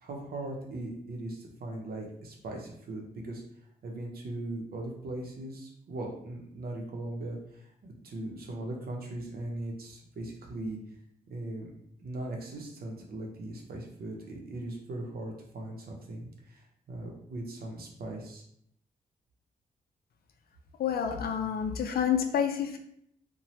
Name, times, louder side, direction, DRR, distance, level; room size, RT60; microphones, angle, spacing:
voice 1, 0.0-3.4 3.8-10.8 11.3-11.7 12.0-18.4, right 1 dB, 75° right, 0 dB, 0.7 m, -39 dB
voice 2, 20.8-22.8, left 8 dB, 80° left, 5 dB, 0.4 m, -28 dB
2.7 x 2.2 x 3.1 m, 0.72 s
wide cardioid pair, 115°, 16 cm